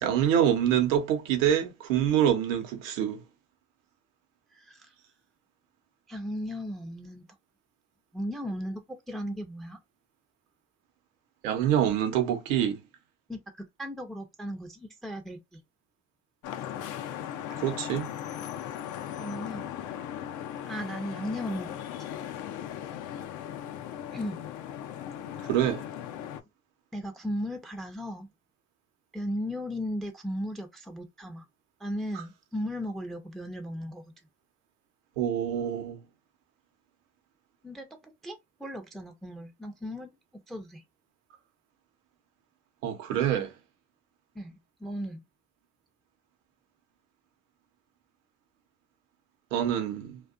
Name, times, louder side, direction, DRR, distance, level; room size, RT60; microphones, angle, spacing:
voice 1, 0.0-3.2 11.4-12.8 17.6-18.1 25.5-25.8 35.2-36.0 42.8-43.5 49.5-50.2, right 10 dB, 85° right, 0.8 m, -26 dB
voice 2, 4.5-4.9 6.1-7.3 8.1-9.8 13.3-15.6 19.2-19.7 20.7-21.7 24.1-24.4 26.9-28.3 29.1-31.5 31.8-34.1 37.6-40.1 40.5-40.8 44.3-45.2, equal, ahead, 0.5 m, -36 dB
Vehicle horn car horn honking / Traffic noise roadway noise, 16.4-26.4, left 10 dB, 55° left, 0.5 m, -38 dB
2.4 x 2.3 x 2.4 m
hypercardioid pair, 70°, 38 cm